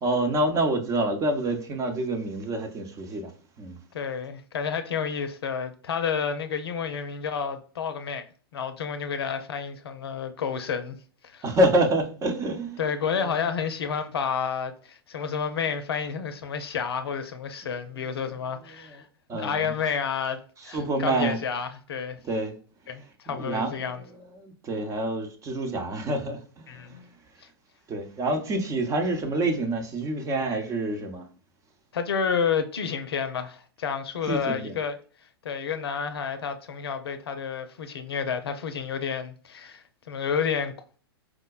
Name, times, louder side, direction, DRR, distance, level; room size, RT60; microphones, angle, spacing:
voice 1, 0.0-3.3 3.6-3.8 11.4-12.8 13.2-13.3 18.7-18.8 19.3-19.7 20.7-21.4 22.2-22.5 23.3-23.9 24.4-27.1 27.9-31.3 34.3-34.7, right 1 dB, 25° right, 0.8 m, -27 dB
voice 2, 3.9-8.2 8.5-11.0 11.2-11.4 12.8-19.0 19.3-22.2 22.9-24.0 26.7-27.0 31.9-35.0 35.4-40.7, left 6 dB, 75° left, 0.6 m, -30 dB
4.8 x 2.1 x 2.3 m
hypercardioid pair, 110°, 13 cm